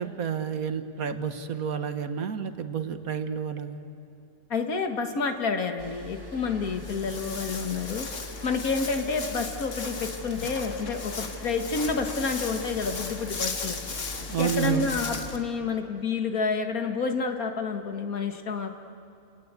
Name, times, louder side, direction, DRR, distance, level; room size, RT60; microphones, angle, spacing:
voice 1, 0.0-3.8 14.3-14.9, right 7 dB, 80° right, 9 dB, 1.7 m, -30 dB
voice 2, 4.5-8.1 8.4-13.8 14.4-18.7, left 4 dB, 85° left, 6 dB, 2.1 m, -29 dB
sound 1, 5.8-15.2, left 1 dB, 15° right, 1.8 m, -42 dB
Walk footsteps, 6.6-15.4, left 4 dB, 60° left, 2.0 m, -37 dB
30.0 x 19.0 x 8.2 m, 2.7 s
omnidirectional pair, 1.5 m